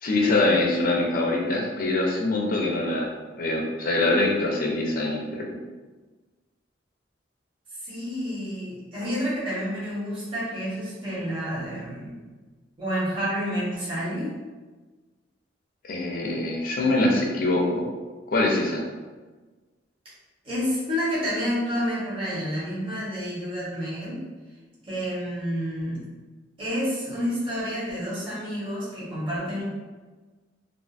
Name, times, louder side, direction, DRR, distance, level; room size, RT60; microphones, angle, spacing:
voice 1, 0.0-5.5 15.8-17.9 18.3-18.8, left 2 dB, 50° left, 0 dB, 0.5 m, -24 dB
voice 2, 7.8-12.2 12.8-14.3 20.4-24.2 24.8-26.0 26.6-29.6, equal, 30° right, -9 dB, 0.9 m, -29 dB
2.5 x 2.4 x 2.4 m, 1.3 s
head